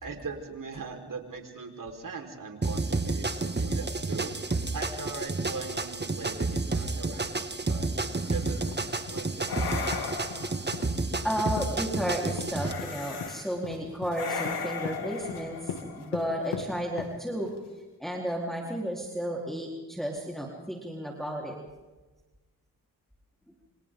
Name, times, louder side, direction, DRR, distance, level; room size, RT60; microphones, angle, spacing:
voice 1, 0.0-8.6 9.1-9.5, right 4 dB, 55° right, 3 dB, 4.8 m, -40 dB
sound 1, 2.6-12.7, right 3 dB, 25° right, 2.0 m, -30 dB
sound 2, 8.3-8.6 9.5-10.7 12.6-13.5 14.1-16.4, left 5 dB, 65° left, 3.2 m, -36 dB
sound 3, 8.5-17.7, left 6 dB, 85° left, 2.5 m, -40 dB
voice 2, 11.2-17.5 18.0-21.6, equal, ahead, -2 dB, 4.1 m, -33 dB
28.5 x 26.5 x 3.9 m, 1.2 s
cardioid pair, 60°, 39 cm